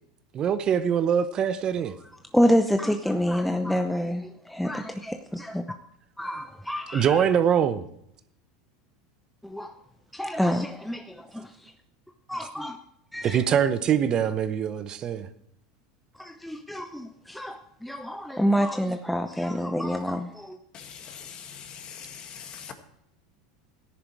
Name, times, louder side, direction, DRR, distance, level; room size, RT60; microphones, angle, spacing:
voice 1, 0.3-1.9 6.9-7.8 13.2-15.3, right 8 dB, 40° right, 0.9 m, -23 dB
voice 2, 2.3-5.6 6.2-7.2 9.4-9.7 10.1-11.7 12.3-12.8 13.1-13.4 16.1-20.6, equal, ahead, 0.8 m, -27 dB
voice 3, 20.7-22.7, left 7 dB, 40° left, 1.9 m, -42 dB
13.5 x 10.5 x 4.8 m
supercardioid pair, 105°, 2 cm